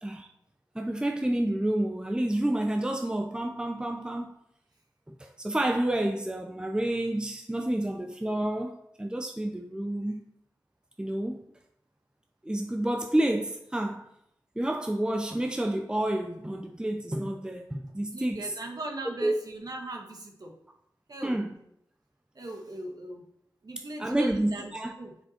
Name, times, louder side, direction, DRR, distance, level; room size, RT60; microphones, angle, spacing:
voice 1, 0.7-4.3 5.1-10.2 11.0-11.4 12.4-14.0 14.6-18.5 19.2-19.4 21.2-21.5 24.0-24.9, right 1 dB, 10° right, 0.7 m, -29 dB
voice 2, 17.9-20.6 21.1-21.4 22.3-23.2 23.6-24.7 25.0-25.1, right 1 dB, 55° right, 1.7 m, -39 dB
7.6 x 6.3 x 4.4 m
cardioid pair, 55°, 8 cm